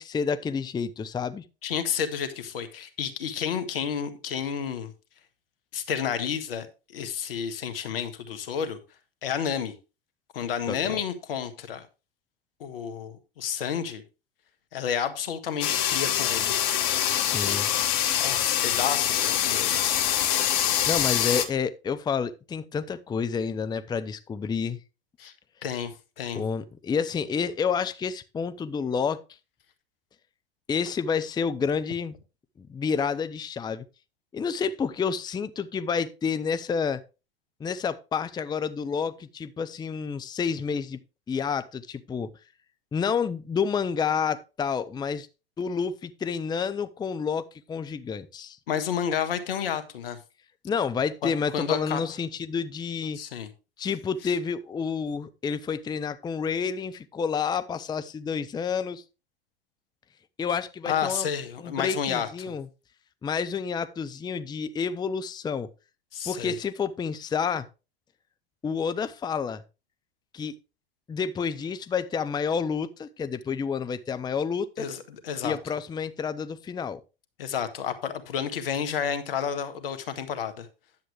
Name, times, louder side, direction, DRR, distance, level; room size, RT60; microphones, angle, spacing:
voice 1, 0.0-1.4 10.7-11.0 17.1-17.7 20.9-24.8 26.3-29.2 30.7-32.2 32.6-33.8 34.3-37.0 37.6-41.0 41.3-42.3 42.9-45.3 45.6-48.6 50.6-53.2 53.8-59.0 60.4-61.3 61.6-62.7 63.2-65.7 66.3-67.7 68.6-69.6 70.3-70.5 71.1-74.9 75.4-77.0, left 6 dB, 15° left, 0.6 m, -29 dB
voice 2, 1.6-4.9 5.7-6.7 6.9-8.8 9.2-9.7 10.3-11.9 12.6-14.0 14.7-16.5 18.2-19.8 25.2-25.3 25.6-26.4 48.7-50.2 51.2-52.0 53.1-53.5 60.8-62.5 66.1-66.6 74.8-75.6 77.4-80.7, left 8 dB, 75° left, 1.6 m, -30 dB
sound 1, 15.6-21.5, left 10 dB, 55° left, 1.5 m, -24 dB
10.5 x 7.8 x 3.3 m
hypercardioid pair, 95°, 29 cm